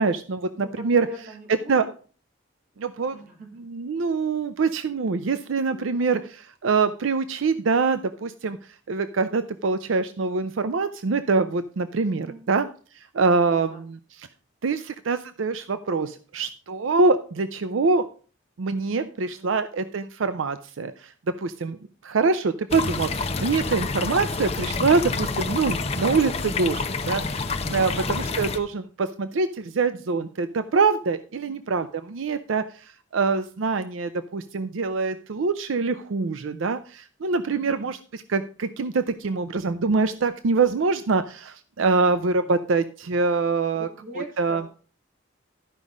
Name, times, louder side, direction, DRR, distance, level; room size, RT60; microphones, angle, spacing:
voice 1, 0.0-1.1 1.7-1.9 2.8-3.2 3.6-8.6 8.9-12.7 13.0-14.3 14.6-18.1 18.6-21.1 21.4-21.8 22.0-43.9 44.4-44.6, right 4 dB, 85° right, 11 dB, 0.5 m, -24 dB
voice 2, 0.5-1.8 3.1-3.5 5.7-6.1 12.1-12.4 13.3-13.8 19.3-19.5 27.7-28.2 31.5-31.6 37.4-37.9 43.7-44.7, right 1 dB, 45° right, 1 dB, 2.9 m, -42 dB
sound 1, 22.7-28.6, left 3 dB, 30° left, 0.7 m, -28 dB
12.5 x 5.3 x 4.8 m, 0.40 s
head